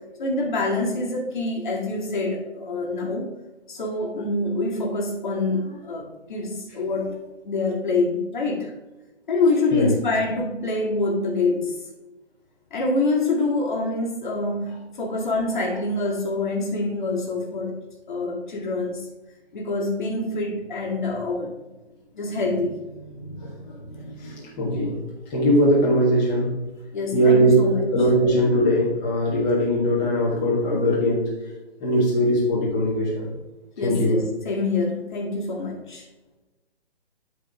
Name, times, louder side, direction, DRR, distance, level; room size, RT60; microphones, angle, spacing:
voice 1, 0.2-3.3 3.7-8.7 9.3-11.8 12.7-17.8 18.1-19.1 19.5-21.5 22.1-24.5 26.9-27.9 33.8-36.1, left 3 dB, 45° left, -2 dB, 2.0 m, -26 dB
voice 2, 24.2-25.0 25.3-26.5 27.1-31.2 31.8-33.3 33.8-34.2, equal, 15° left, -6 dB, 1.6 m, -20 dB
8.7 x 4.9 x 3.6 m, 1.1 s
figure-of-eight pair, 150°, 34 cm